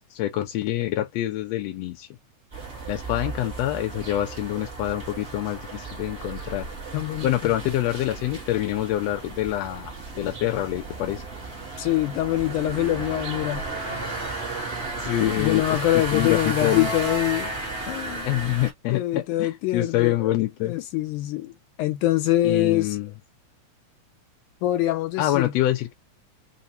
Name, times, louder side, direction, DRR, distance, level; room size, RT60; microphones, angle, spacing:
voice 1, 0.1-2.1 2.9-6.7 7.2-11.2 15.0-16.9 18.2-20.7 22.4-23.1 25.2-25.9, left 14 dB, 70° left, 1.7 m, -26 dB
sound 1, 2.5-18.7, right 2 dB, 45° right, 0.8 m, -34 dB
voice 2, 6.9-7.5 11.8-13.7 15.2-17.5 17.9-18.3 18.9-20.3 20.6-21.5 21.8-23.0 24.6-25.5, left 15 dB, 85° left, 2.2 m, -24 dB
5.0 x 2.1 x 2.7 m
omnidirectional pair, 3.5 m